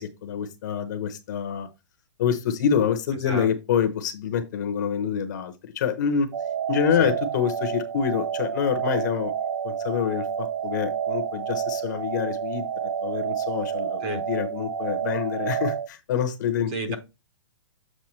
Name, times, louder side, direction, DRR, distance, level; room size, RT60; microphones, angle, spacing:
voice 1, 0.0-1.7 2.2-6.3 6.7-9.3 9.6-12.7 13.0-17.0, left 8 dB, 35° left, 0.8 m, -26 dB
voice 2, 3.3-3.5 7.0-7.1 14.0-14.2 16.7-17.0, right 3 dB, 20° right, 0.9 m, -31 dB
sound 1, 6.3-15.9, right 8 dB, 60° right, 0.5 m, -29 dB
7.4 x 4.8 x 3.2 m
hypercardioid pair, 175°, 16 cm